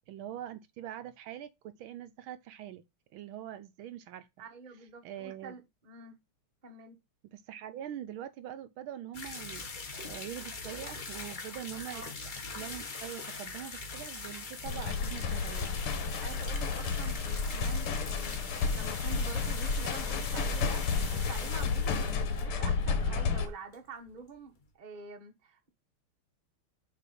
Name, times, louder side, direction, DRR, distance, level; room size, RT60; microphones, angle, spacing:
voice 1, 0.1-2.8 3.1-4.3 5.0-5.6 7.3-12.0 12.5-15.8 21.9-22.2, right 11 dB, 75° right, 1.4 m, -43 dB
voice 2, 4.4-6.2 6.6-7.0 11.9-12.1 16.2-25.7, right 4 dB, 30° right, 0.9 m, -47 dB
sound 1, 9.1-23.5 23.7-23.8 24.1-24.2 24.6-24.7, left 3 dB, 35° left, 0.8 m, -42 dB
sound 2, 14.7-23.5, left 5 dB, 80° left, 2.0 m, -31 dB
7.5 x 3.3 x 5.3 m
omnidirectional pair, 2.4 m